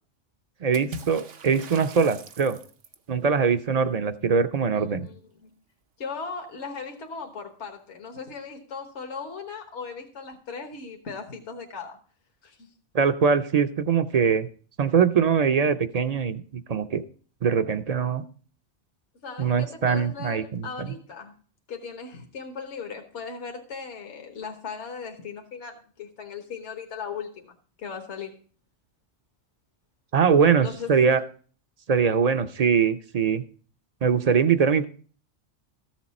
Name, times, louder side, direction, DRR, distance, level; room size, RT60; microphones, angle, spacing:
voice 1, 0.6-2.6 3.1-5.1 12.9-14.5 14.8-16.4 16.7-17.0 17.4-18.2 19.4-20.9 30.1-31.2 31.9-33.4 34.0-34.9, right 6 dB, 50° right, 10 dB, 0.5 m, -22 dB
Water / Splash splatter, 0.7-3.1, right 3 dB, 85° right, 1.2 m, -42 dB
voice 2, 4.7-5.5 6.0-12.0 12.4-12.7 19.2-21.3 21.7-28.3 30.6-31.1, left 5 dB, 70° left, 4 dB, 1.5 m, -38 dB
14.0 x 7.4 x 4.1 m, 0.42 s
omnidirectional pair, 1.2 m